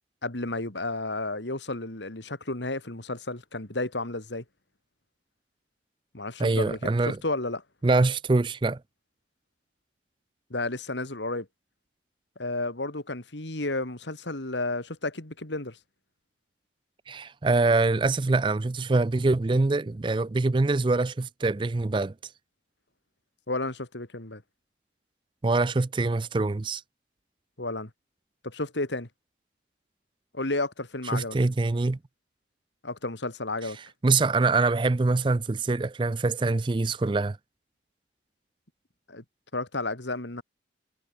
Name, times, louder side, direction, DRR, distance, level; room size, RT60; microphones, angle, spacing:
voice 1, 0.2-4.4 6.1-7.6 10.5-11.5 12.4-15.8 23.5-24.4 27.6-27.9 28.4-29.1 30.3-31.4 32.8-33.8 39.1-39.2 39.5-40.4, left 2 dB, 80° left, 3.0 m, -32 dB
voice 2, 6.4-7.2 7.8-8.8 17.1-22.1 25.4-26.8 31.1-32.0 34.0-37.4, right 3 dB, 25° right, 0.4 m, -24 dB
head